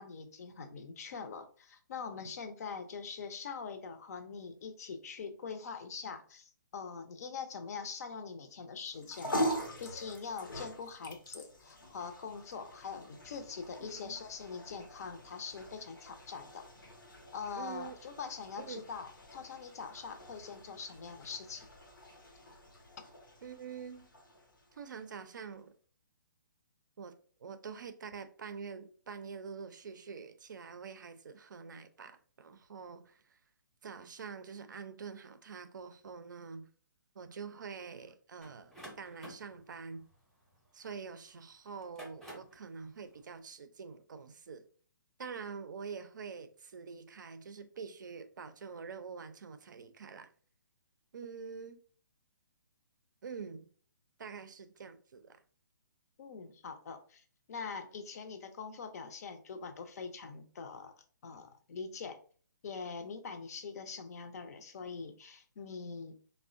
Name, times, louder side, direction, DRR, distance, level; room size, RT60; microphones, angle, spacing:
voice 1, 0.0-9.4 9.8-16.7 17.3-21.7 56.2-62.2 62.6-66.1, left 5 dB, 50° left, 0.5 m, -43 dB
sound 1, 8.8-25.3, equal, 90° left, 0.8 m, -43 dB
voice 2, 13.8-14.2 17.6-18.0 18.6-18.9 23.4-24.1 24.7-25.7 27.0-27.1 27.4-33.4 33.8-36.7 37.2-40.0 40.7-44.6 45.2-50.3 51.1-51.8 53.2-53.7 54.2-55.4, right 5 dB, 70° right, 0.4 m, -46 dB
sound 2, 38.4-41.1 41.7-42.6, equal, 5° left, 0.6 m, -51 dB
3.5 x 2.1 x 2.4 m
hypercardioid pair, 140°, 11 cm